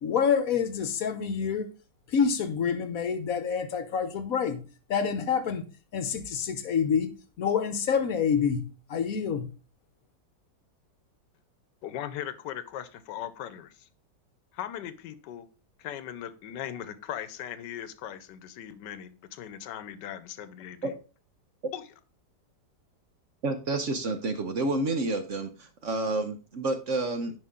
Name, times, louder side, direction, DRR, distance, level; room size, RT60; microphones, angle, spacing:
voice 1, 0.0-1.7 2.1-4.6 4.9-5.6 5.9-9.5, left 6 dB, 60° left, 1.1 m, -27 dB
voice 2, 11.8-13.9 14.5-15.5 15.8-20.9 21.7-21.9, left 10 dB, 80° left, 1.3 m, -39 dB
voice 3, 23.4-27.3, right 2 dB, 55° right, 1.0 m, -29 dB
9.7 x 5.3 x 3.7 m
omnidirectional pair, 1.9 m